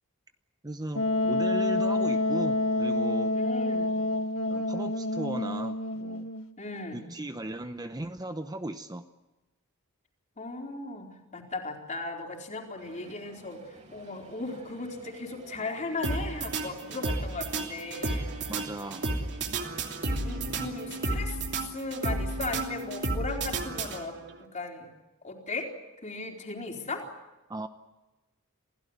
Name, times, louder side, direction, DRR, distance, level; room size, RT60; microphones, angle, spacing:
voice 1, 0.6-3.3 4.5-6.3 6.9-9.1 18.5-19.1 20.5-20.7 27.5-27.7, right 1 dB, 20° right, 8 dB, 0.8 m, -37 dB
Wind instrument woodwind instrument, 0.9-6.5, left 2 dB, 80° left, 1.6 m, -28 dB
voice 2, 3.3-4.0 6.6-7.0 10.4-18.4 20.2-21.4 21.7-24.2 24.5-24.9 25.2-25.7 26.0-27.0, left 3 dB, 35° left, 1 dB, 4.2 m, -37 dB
Crowd, 12.8-21.1, right 2 dB, 35° right, 5.3 m, -52 dB
sound 1, 16.0-24.4, right 2 dB, 55° right, 2.9 m, -32 dB
28.0 x 16.5 x 9.6 m, 1.1 s
head